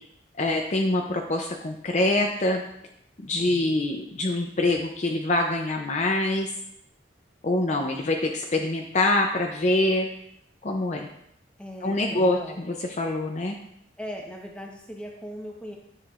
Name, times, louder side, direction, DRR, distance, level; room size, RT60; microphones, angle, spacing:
voice 1, 0.4-2.6 3.2-6.5 7.4-10.1 10.6-11.1 11.8-13.6, left 2 dB, 35° left, 2 dB, 0.5 m, -25 dB
voice 2, 3.4-3.8 11.6-12.6 14.0-15.8, equal, 5° left, 0 dB, 1.0 m, -39 dB
9.5 x 7.3 x 2.5 m, 0.73 s
head